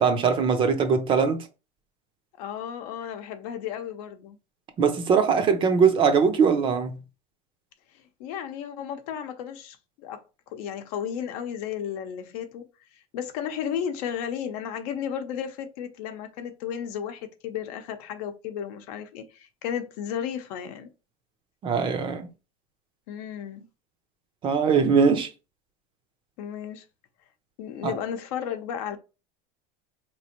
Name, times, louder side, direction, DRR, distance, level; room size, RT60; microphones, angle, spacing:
voice 1, 0.0-1.5 4.8-7.0 21.6-22.3 24.4-25.3 27.8-27.9, right 6 dB, 25° right, 0.5 m, -21 dB
voice 2, 2.4-4.4 7.9-12.6 12.9-20.9 23.1-23.7 26.4-26.8 27.6-29.0, left 8 dB, 70° left, 0.7 m, -34 dB
4.3 x 3.1 x 2.9 m
supercardioid pair, 160°, 20 cm